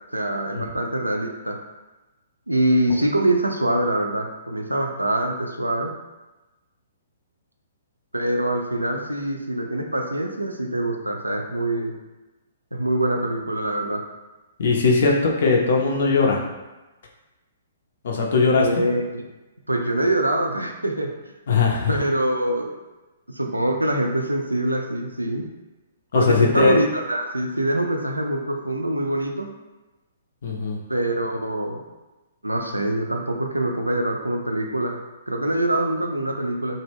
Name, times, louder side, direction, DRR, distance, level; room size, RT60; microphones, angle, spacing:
voice 1, 0.1-1.6 2.5-5.9 8.1-11.9 12.7-14.0 18.6-19.2 19.7-21.1 21.9-22.8 23.3-25.5 26.1-29.5 30.9-31.8 32.4-35.0 35.3-36.8, right 1 dB, 85° right, 3 dB, 0.3 m, -24 dB
voice 2, 14.6-16.4 18.0-18.7 21.5-22.0 26.1-26.8 30.4-30.8, left 4 dB, 55° left, -1 dB, 0.4 m, -19 dB
2.2 x 2.0 x 3.3 m, 1.1 s
figure-of-eight pair, 120°, 0 cm